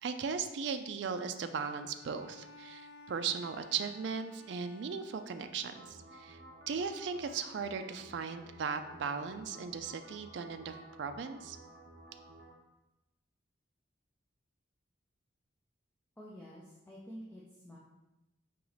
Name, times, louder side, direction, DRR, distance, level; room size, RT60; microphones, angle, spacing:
voice 1, 0.0-6.4 6.7-11.6, right 6 dB, 65° right, 9 dB, 0.3 m, -37 dB
Bowed string instrument, 1.5-6.1, left 2 dB, 85° left, 0.8 m, -56 dB
sound 1, 5.6-12.5, right 2 dB, 50° right, 0.7 m, -54 dB
voice 2, 16.2-17.8, equal, 10° left, -6 dB, 0.5 m, -49 dB
4.5 x 3.0 x 3.9 m, 0.98 s
head